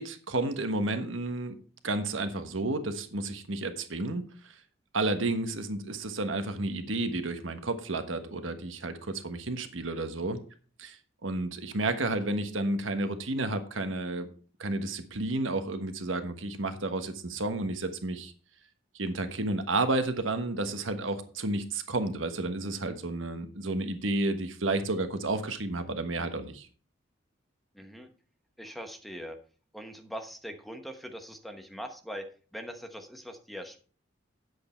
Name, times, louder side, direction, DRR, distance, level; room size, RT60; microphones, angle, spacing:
voice 1, 0.0-1.5 1.8-4.5 4.9-10.4 10.8-11.0 11.2-14.3 14.6-18.3 18.9-26.7, right 2 dB, 85° right, 8 dB, 1.3 m, -31 dB
voice 2, 27.7-28.1 28.6-29.4 29.7-32.3 32.5-33.8, equal, ahead, 6 dB, 1.1 m, -41 dB
9.5 x 7.9 x 4.4 m, 0.40 s
head